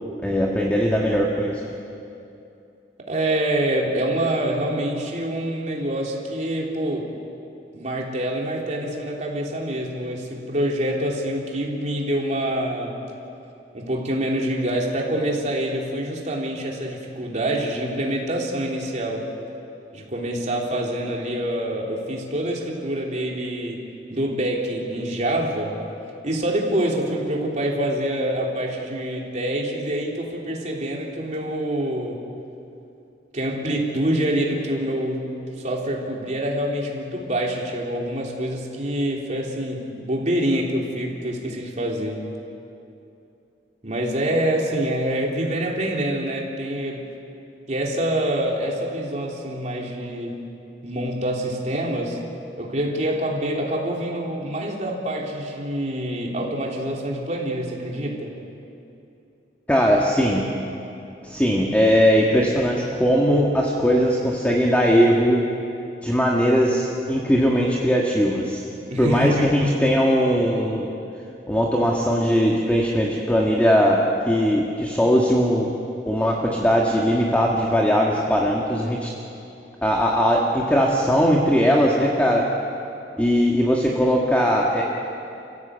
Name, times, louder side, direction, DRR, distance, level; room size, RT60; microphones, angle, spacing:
voice 1, 0.2-1.6 59.7-60.5 61.2-65.4 66.0-68.6 69.0-70.9 71.5-75.7 76.1-79.1 79.8-82.5 83.2-84.8, equal, 10° left, -2 dB, 1.8 m, -19 dB
voice 2, 3.1-7.1 7.7-13.0 13.7-19.3 19.9-25.8 26.2-32.2 33.3-42.2 43.8-47.0 47.7-50.4 50.8-52.2 52.6-58.4 68.9-69.5, right 1 dB, 45° right, -1 dB, 3.4 m, -26 dB
29.5 x 15.5 x 8.2 m, 2.7 s
head